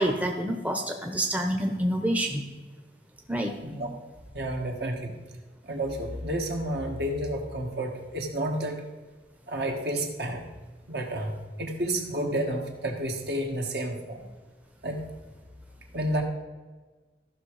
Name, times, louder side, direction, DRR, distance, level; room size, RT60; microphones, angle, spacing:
voice 1, 0.0-2.4 3.3-3.5, right 1 dB, 10° right, 2 dB, 0.8 m, -27 dB
voice 2, 4.3-5.1 5.6-8.8 9.5-10.4 10.9-14.2 14.8-15.1 15.9-16.2, right 1 dB, 65° right, 2 dB, 1.7 m, -30 dB
14.0 x 6.0 x 4.8 m, 1.3 s
head